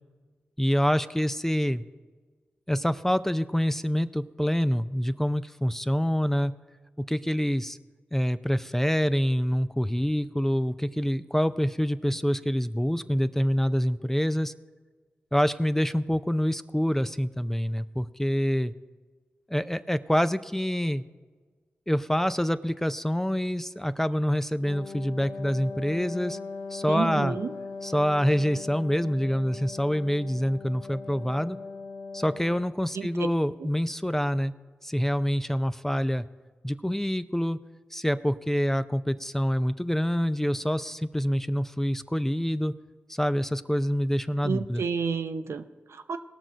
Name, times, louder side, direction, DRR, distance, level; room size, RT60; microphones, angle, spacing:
voice 1, 0.6-1.8 2.7-6.5 7.0-7.8 8.1-14.5 15.3-18.7 19.5-21.0 21.9-26.4 26.7-27.4 27.8-31.6 32.1-34.5 34.8-36.3 36.6-37.6 37.9-42.7 43.1-44.8, equal, 10° left, 12 dB, 0.5 m, -26 dB
Wind instrument woodwind instrument, 24.6-32.8, left 4 dB, 75° left, 0.7 m, -40 dB
voice 2, 26.9-27.5 32.9-33.3 44.4-46.2, right 5 dB, 75° right, 8 dB, 0.6 m, -30 dB
18.0 x 6.1 x 5.1 m, 1.4 s
cardioid pair, 40°, 5 cm